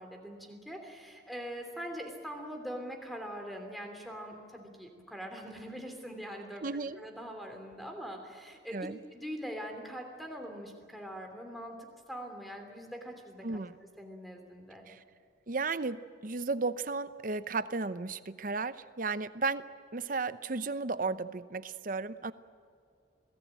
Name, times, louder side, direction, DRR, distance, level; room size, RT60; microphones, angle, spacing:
voice 1, 0.0-6.6 7.0-13.6 14.0-14.9, equal, ahead, 4 dB, 3.1 m, -43 dB
voice 2, 6.6-7.0 8.7-9.0 13.4-13.7 14.9-15.0 15.5-19.6 19.9-22.3, right 3 dB, 45° right, 14 dB, 0.8 m, -34 dB
27.0 x 18.5 x 9.0 m, 2.3 s
head